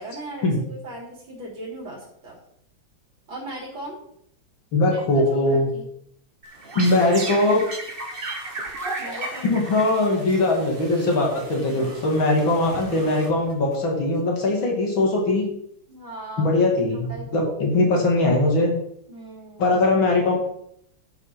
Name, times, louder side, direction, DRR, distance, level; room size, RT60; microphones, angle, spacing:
voice 1, 0.0-2.4 3.3-4.0 4.9-5.8 9.0-9.6 15.9-16.5 16.9-17.5 19.1-19.8, right 1 dB, 85° right, -4 dB, 4.1 m, -38 dB
voice 2, 4.7-5.7 6.7-7.6 9.1-15.5 16.4-18.7 19.6-20.4, left 2 dB, 90° left, -1 dB, 3.4 m, -21 dB
sound 1, 6.4-13.7, right 2 dB, 30° right, 1.5 m, -35 dB
11.5 x 5.6 x 6.0 m, 0.71 s
omnidirectional pair, 2.1 m